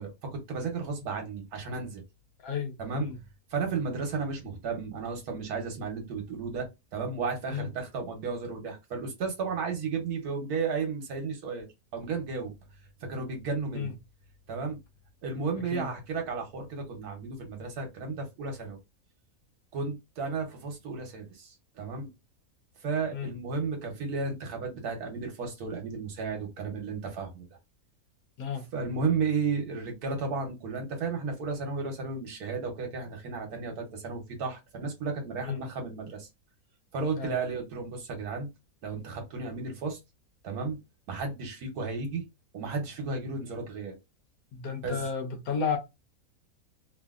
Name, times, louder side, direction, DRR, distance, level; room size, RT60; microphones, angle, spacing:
voice 1, 0.0-2.0 2.8-3.1 3.5-6.7 6.9-11.7 11.9-12.5 13.0-13.9 14.5-14.8 15.2-18.8 19.7-22.1 22.8-27.5 28.7-36.3 36.9-38.5 38.8-40.0 40.4-40.8 41.1-42.2 42.5-44.0 44.8-45.1, right 4 dB, 80° right, 1.3 m, -33 dB
voice 2, 2.4-3.2 7.5-7.7 13.7-13.9 15.7-15.9 23.1-23.3 28.4-28.6 35.5-35.6 37.2-37.3 44.6-45.8, left 6 dB, 75° left, 1.2 m, -32 dB
2.8 x 2.6 x 2.3 m
omnidirectional pair, 1.6 m